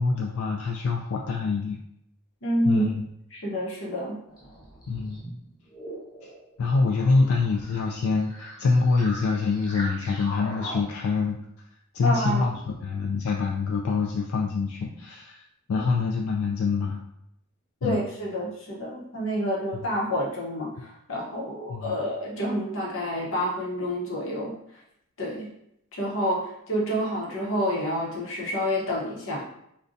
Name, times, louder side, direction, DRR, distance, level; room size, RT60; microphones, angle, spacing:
voice 1, 0.0-1.8 2.6-2.9 4.9-5.2 6.2-6.3 6.6-11.4 11.9-15.4 15.7-17.0 17.8-18.0 21.7-22.0, left 4 dB, 85° left, 0 dB, 0.3 m, -25 dB
voice 2, 2.4-2.8 3.3-4.2 12.0-12.4 17.8-24.6 25.2-25.5 25.9-29.4, equal, 65° left, -3 dB, 0.8 m, -28 dB
sound 1, 4.3-10.8, equal, 20° left, 1.0 m, -41 dB
3.7 x 2.2 x 2.6 m, 0.77 s
head